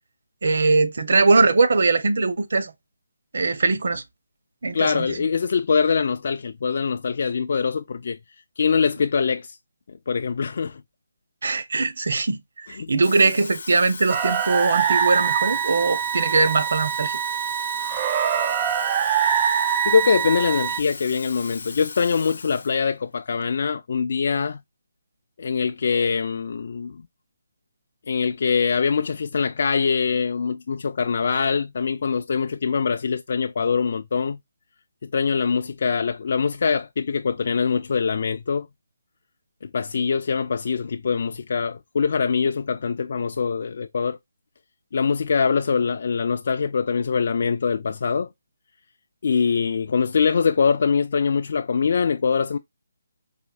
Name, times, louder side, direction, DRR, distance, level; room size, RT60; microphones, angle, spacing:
voice 1, 0.4-2.7 3.3-4.0 4.6-5.3 11.4-17.1, right 3 dB, 65° right, 0.7 m, -21 dB
voice 2, 4.7-8.2 8.6-9.6 10.1-10.8 12.7-12.9 19.9-24.6 25.4-27.0 28.1-34.4 35.0-38.7 39.6-44.2 44.9-48.3 49.2-52.6, left 5 dB, 50° left, 0.3 m, -23 dB
Water tap faucet / Fill (with liquid), 12.9-22.8 23.2-23.4, left 4 dB, 65° left, 0.7 m, -38 dB
sound 1, 14.1-20.8, right 9 dB, 25° right, 0.4 m, -24 dB
4.2 x 2.8 x 2.3 m
hypercardioid pair, 165°, 0 cm